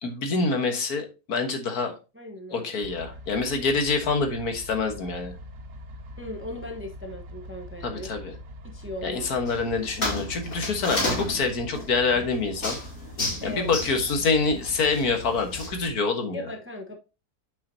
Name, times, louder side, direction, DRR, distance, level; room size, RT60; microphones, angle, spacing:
voice 1, 0.0-2.0 2.5-5.3 7.8-8.3 9.0-12.8 13.4-16.5, left 4 dB, 70° left, 1.8 m, -26 dB
voice 2, 2.1-2.7 6.2-8.1 8.6-9.3 13.4-13.7 16.3-17.0, left 1 dB, 10° right, 0.9 m, -37 dB
sound 1, 2.8-15.9, equal, 60° right, 1.2 m, -43 dB
sound 2, 9.5-15.7, left 1 dB, 55° left, 2.5 m, -33 dB
8.5 x 6.0 x 2.7 m
omnidirectional pair, 1.7 m